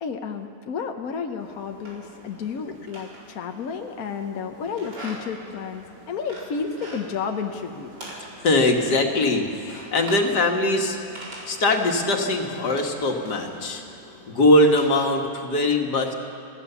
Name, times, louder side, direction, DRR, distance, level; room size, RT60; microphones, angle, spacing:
voice 1, 0.0-7.9, left 6 dB, 65° left, 5 dB, 1.3 m, -31 dB
sound 1, 1.4-15.0, right 1 dB, 80° right, 5.3 m, -43 dB
voice 2, 8.4-11.0 11.5-13.8 14.3-16.1, left 1 dB, 80° left, 2 dB, 2.3 m, -21 dB
25.5 x 16.5 x 7.0 m, 2.5 s
omnidirectional pair, 1.8 m